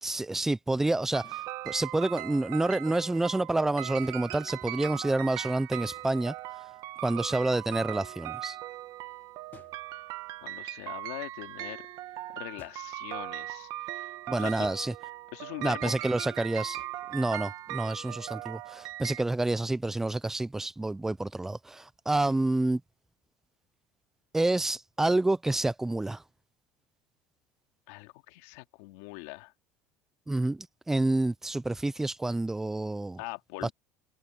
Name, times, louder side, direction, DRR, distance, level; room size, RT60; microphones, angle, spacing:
voice 1, 0.0-6.3 7.0-8.6 14.3-14.9 15.6-16.8 17.1-22.8 24.3-26.2 30.3-33.2 33.6-33.7, right 2 dB, 5° right, 0.4 m, -28 dB
sound 1, 1.1-19.2, right 16 dB, 50° right, 1.6 m, -39 dB
sound 2, 1.2-1.5 4.0-4.8 5.8-6.4 7.7-8.4 9.5-10.4 12.6-13.0 14.6-15.1 16.8-17.2 19.6-19.7, left 8 dB, 25° left, 1.4 m, -57 dB
voice 2, 10.4-11.9 12.3-14.7 15.3-15.9 22.2-22.3 27.9-29.5 33.2-33.7, left 22 dB, 75° left, 2.5 m, -42 dB
cardioid pair, 160°, 8 cm